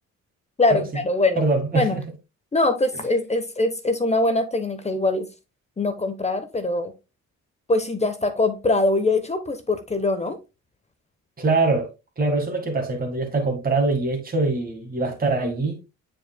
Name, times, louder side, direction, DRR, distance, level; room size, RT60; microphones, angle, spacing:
voice 1, 0.6-1.5 1.7-2.0 2.5-5.3 5.8-6.9 7.7-10.4, left 2 dB, 20° left, 1.0 m, -22 dB
voice 2, 1.4-2.0 11.4-11.9 12.2-15.8, right 3 dB, 30° right, 1.8 m, -23 dB
8.7 x 4.9 x 2.2 m
cardioid pair, 90°, 30 cm